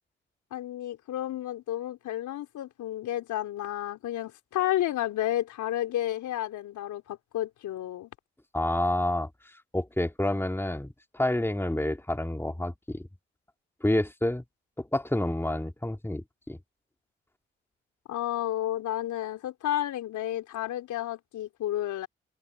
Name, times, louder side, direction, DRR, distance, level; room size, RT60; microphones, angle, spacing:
voice 1, 0.5-8.1 18.1-22.1, left 13 dB, 70° left, 4.2 m, -31 dB
voice 2, 8.5-9.3 9.7-13.1 13.8-14.4 14.8-16.6, left 1 dB, 5° left, 3.1 m, -28 dB
open air
hypercardioid pair, 45°, 31 cm